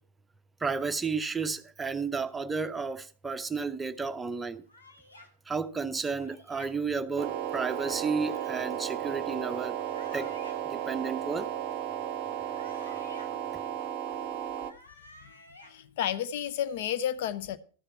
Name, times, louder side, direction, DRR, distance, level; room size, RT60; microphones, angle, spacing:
voice 1, 0.6-4.6 5.5-9.8 10.1-10.3 10.6-11.5, right 4 dB, 10° right, 0.7 m, -32 dB
sound 1, 4.7-5.3 6.1-6.7 7.8-8.7 9.7-10.6 12.2-13.3 14.4-15.7, left 1 dB, 80° left, 2.0 m, -52 dB
sound 2, 7.2-14.7, right 10 dB, 45° right, 0.7 m, -34 dB
voice 2, 15.6-17.6, left 10 dB, 50° left, 0.7 m, -31 dB
13.5 x 6.7 x 5.7 m
figure-of-eight pair, 90°, 0 cm